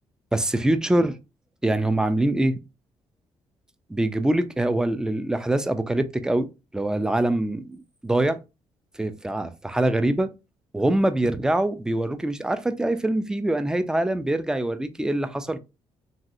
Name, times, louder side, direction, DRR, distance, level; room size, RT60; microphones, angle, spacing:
voice 1, 0.3-1.2 1.6-2.5 3.9-6.5 6.7-8.4 9.0-10.3 10.7-15.6, right 1 dB, 5° right, 0.3 m, -24 dB
3.0 x 2.6 x 2.5 m
cardioid pair, 95°, 11 cm